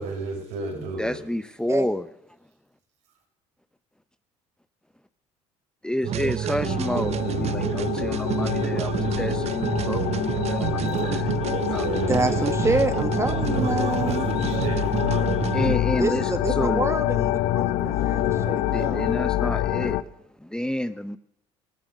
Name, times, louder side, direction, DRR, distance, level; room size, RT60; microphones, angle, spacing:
voice 1, 0.0-1.2 11.5-12.5 13.5-15.4 17.7-18.7, right 3 dB, 75° right, 6.0 m, -35 dB
voice 2, 1.0-2.1 5.8-11.4 11.7-11.9 15.5-16.3 16.6-16.9 18.4-21.2, left 1 dB, 5° left, 0.8 m, -29 dB
sound 1, 6.0-15.8, right 11 dB, 45° right, 0.5 m, -28 dB
sound 2, 6.6-20.0, left 14 dB, 70° left, 0.7 m, -26 dB
voice 3, 12.1-14.3 16.0-19.1, right 3 dB, 20° right, 1.6 m, -27 dB
16.0 x 13.0 x 6.6 m
hypercardioid pair, 60°, 15 cm